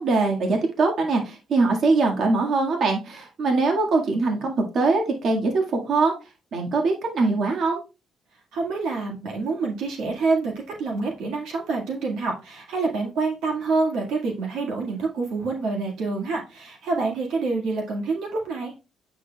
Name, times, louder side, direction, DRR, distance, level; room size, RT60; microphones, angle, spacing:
voice 1, 0.0-6.1 6.5-7.8, right 3 dB, 60° right, 2 dB, 1.8 m, -22 dB
voice 2, 8.5-18.7, right 3 dB, 85° right, 0 dB, 1.8 m, -27 dB
8.6 x 6.2 x 2.3 m, 0.28 s
cardioid pair, 90°, 0 cm